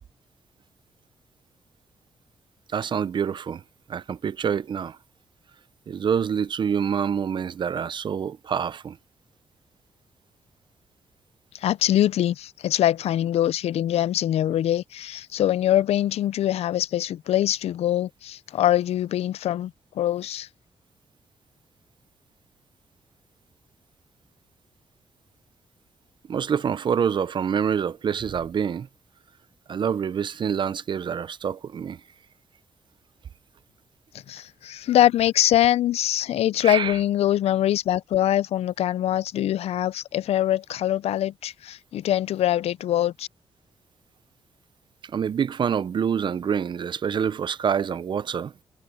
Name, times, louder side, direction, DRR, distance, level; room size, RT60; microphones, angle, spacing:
voice 1, 2.7-3.6 3.9-5.0 5.9-9.0 26.3-28.9 29.7-32.0 36.6-37.0 45.0-48.5, right 7 dB, 50° right, 0.5 m, -26 dB
voice 2, 11.5-20.5 34.3-43.3, left 12 dB, 85° left, 0.4 m, -23 dB
cardioid pair, 105°, 10 cm